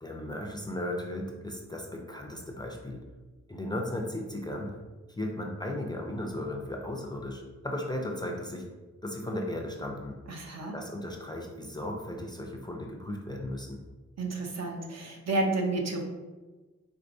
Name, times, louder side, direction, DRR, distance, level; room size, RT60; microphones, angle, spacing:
voice 1, 0.0-3.0 3.5-4.8 5.1-8.6 9.0-10.2 10.7-13.8, left 1 dB, 15° left, 1 dB, 0.4 m, -36 dB
voice 2, 10.3-10.7 14.2-16.0, right 2 dB, 65° right, 2 dB, 0.7 m, -31 dB
4.5 x 3.5 x 2.6 m, 1.3 s
wide cardioid pair, 170°, 29 cm